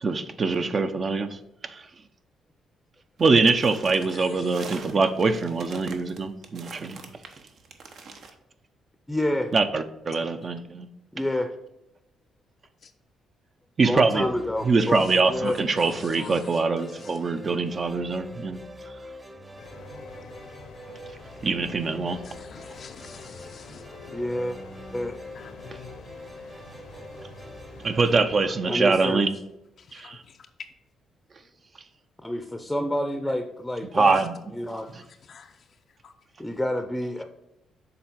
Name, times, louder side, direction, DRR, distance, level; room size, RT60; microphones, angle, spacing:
voice 1, 0.0-1.9 3.2-7.0 9.5-10.9 13.8-14.3 14.6-18.6 21.4-22.2 27.8-29.3 29.9-30.2 33.9-34.3 34.9-35.0, right 4 dB, 40° right, 0.6 m, -24 dB
sound 1, 3.2-8.3, right 4 dB, 65° right, 1.0 m, -43 dB
voice 2, 4.1-4.7 10.4-10.5 12.8-12.9 14.9-15.2 15.8-17.4 22.2-23.9 25.3-25.5 29.0-29.1 29.8-30.7 34.1-34.2 34.6-36.1, left 6 dB, 55° left, 0.4 m, -47 dB
voice 3, 9.1-9.5 11.1-11.5 13.8-15.6 24.1-24.6 24.9-25.2 28.7-29.2 32.2-34.2 34.5-34.9 36.4-37.2, left 1 dB, 5° left, 0.6 m, -28 dB
sound 2, 14.1-29.4, left 1 dB, 20° right, 0.9 m, -45 dB
sound 3, 19.6-28.5, left 4 dB, 80° left, 0.8 m, -46 dB
6.9 x 3.8 x 6.0 m
cardioid pair, 90°, 0 cm